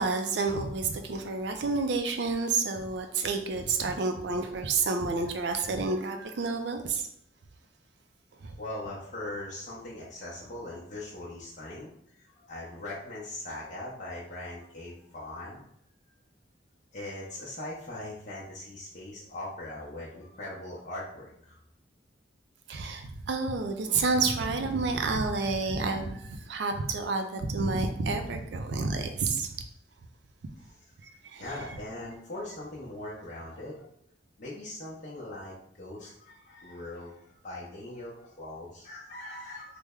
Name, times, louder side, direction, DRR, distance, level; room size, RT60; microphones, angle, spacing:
voice 1, 0.0-7.1 8.4-8.5 22.7-29.6 31.0-31.4, right 4 dB, 65° right, 6 dB, 0.4 m, -29 dB
voice 2, 8.6-15.6 16.9-21.6 31.4-33.9 34.4-39.8, left 1 dB, 40° left, -6 dB, 0.6 m, -40 dB
3.2 x 2.1 x 3.5 m, 0.72 s
head